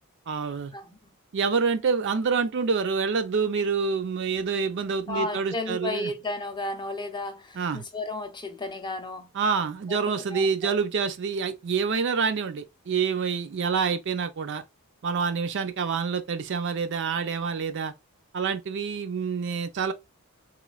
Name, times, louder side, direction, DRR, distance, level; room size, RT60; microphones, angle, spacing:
voice 1, 0.3-0.7 1.3-6.1 7.5-7.8 9.3-14.6 15.0-17.9 18.3-19.9, right 5 dB, 55° right, 0.4 m, -27 dB
voice 2, 5.1-9.3 9.9-10.7, left 2 dB, 20° left, 0.5 m, -33 dB
3.2 x 3.0 x 2.3 m
head